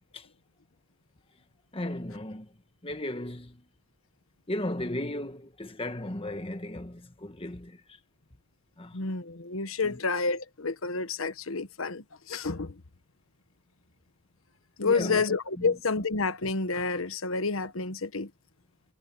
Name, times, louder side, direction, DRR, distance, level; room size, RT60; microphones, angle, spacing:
voice 1, 1.7-2.5 2.8-3.6 4.5-7.8 8.8-9.0 9.8-10.0 14.8-15.3 15.6-15.7, left 1 dB, 25° left, 1.6 m, -35 dB
voice 2, 8.9-12.7 14.8-18.3, left 4 dB, 85° left, 1.3 m, -29 dB
head